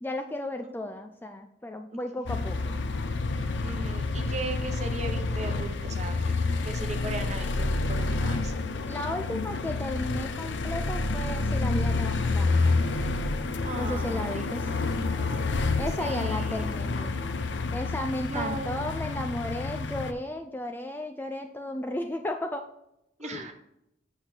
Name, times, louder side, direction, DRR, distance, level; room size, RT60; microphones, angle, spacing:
voice 1, 0.0-2.8 8.7-12.8 13.7-14.7 15.8-17.1 17.7-22.6 23.2-23.5, left 1 dB, 10° left, 6 dB, 0.3 m, -34 dB
sound 1, 2.3-20.1, left 3 dB, 65° left, 0.5 m, -29 dB
voice 2, 3.4-6.2 6.6-8.5 13.6-15.6 16.0-16.6 18.3-18.8 23.2-23.5, right 2 dB, 35° right, 4 dB, 0.9 m, -38 dB
7.8 x 6.4 x 2.8 m, 0.83 s
head